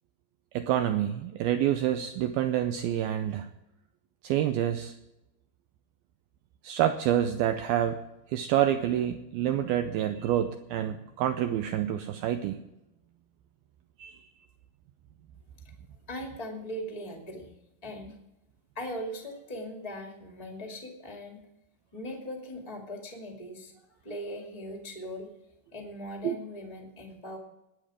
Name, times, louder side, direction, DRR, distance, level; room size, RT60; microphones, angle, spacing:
voice 1, 0.5-3.5 4.2-4.9 6.6-8.0 8.3-12.6 14.0-14.2 26.2-26.4, right 11 dB, 90° right, 8 dB, 2.1 m, -27 dB
voice 2, 16.1-17.5 17.8-18.2 18.7-21.4 21.9-25.3 25.7-27.4, equal, 20° left, 2 dB, 1.0 m, -39 dB
20.5 x 8.8 x 5.0 m, 0.91 s
omnidirectional pair, 5.0 m